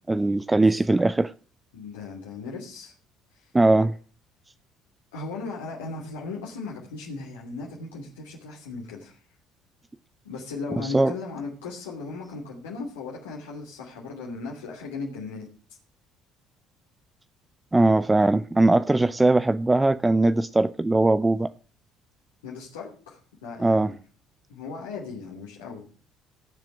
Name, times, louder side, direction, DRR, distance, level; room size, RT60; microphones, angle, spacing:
voice 1, 0.1-1.3 3.5-3.9 10.8-11.2 17.7-21.5 23.6-23.9, right 2 dB, 15° right, 0.6 m, -20 dB
voice 2, 1.7-2.9 3.3-3.5 5.1-9.2 10.2-15.5 22.4-23.9 24.5-25.8, left 4 dB, 80° left, 3.0 m, -37 dB
17.0 x 7.5 x 7.4 m
hypercardioid pair, 55°, 0 cm